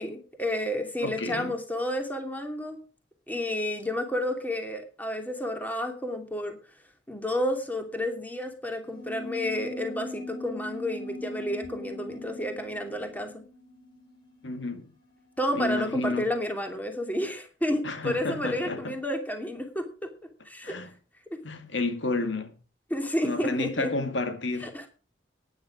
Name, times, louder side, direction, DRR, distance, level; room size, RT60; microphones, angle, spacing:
voice 1, 0.0-2.8 3.3-6.6 7.1-13.4 15.4-20.1 20.4-20.8 21.3-21.4 22.9-23.9 24.6-24.9, left 1 dB, 10° left, 2.7 m, -31 dB
voice 2, 1.0-1.5 14.4-14.9 15.5-16.3 17.8-18.9 20.6-20.9 21.4-22.5 23.2-24.8, left 2 dB, 85° left, 2.1 m, -31 dB
sound 1, 8.8-14.8, left 1 dB, 25° left, 2.9 m, -41 dB
13.0 x 10.5 x 4.9 m
head